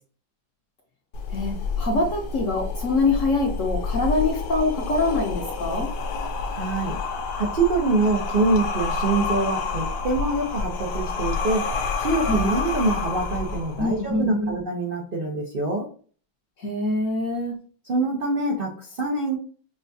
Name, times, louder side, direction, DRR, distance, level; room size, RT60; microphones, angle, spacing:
sound 1, 1.1-14.1, left 4 dB, 80° left, 1.5 m, -29 dB
voice 1, 1.3-5.9 12.2-12.5 13.8-14.5 16.6-17.6, left 2 dB, 55° left, 1 dB, 0.9 m, -24 dB
voice 2, 6.5-7.0 7.4-11.7 12.0-15.9 17.9-19.4, right 3 dB, 80° right, -1 dB, 0.4 m, -25 dB
6.0 x 2.3 x 2.6 m, 0.42 s
omnidirectional pair, 2.1 m